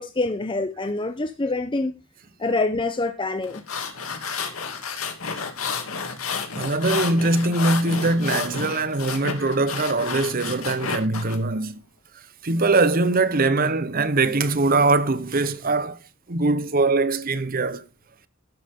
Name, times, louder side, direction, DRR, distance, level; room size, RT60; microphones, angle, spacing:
voice 1, 0.0-1.9 2.4-3.6, left 2 dB, 25° left, 0.7 m, -25 dB
sound 1, 3.4-11.4, left 5 dB, 85° left, 2.5 m, -31 dB
voice 2, 6.6-11.8 12.4-16.0 16.3-17.8, right 3 dB, 45° right, 0.9 m, -22 dB
12.0 x 11.5 x 3.7 m
head